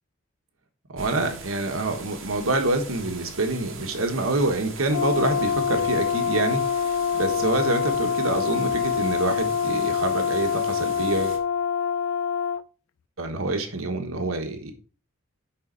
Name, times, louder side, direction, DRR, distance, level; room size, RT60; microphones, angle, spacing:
voice 1, 0.9-11.4 13.2-14.7, right 2 dB, 90° right, 6 dB, 1.4 m, -26 dB
sound 1, 1.0-11.4, right 4 dB, 70° right, 1.7 m, -41 dB
Brass instrument, 4.9-12.6, left 7 dB, 80° left, 0.4 m, -25 dB
10.5 x 4.0 x 4.0 m, 0.38 s
head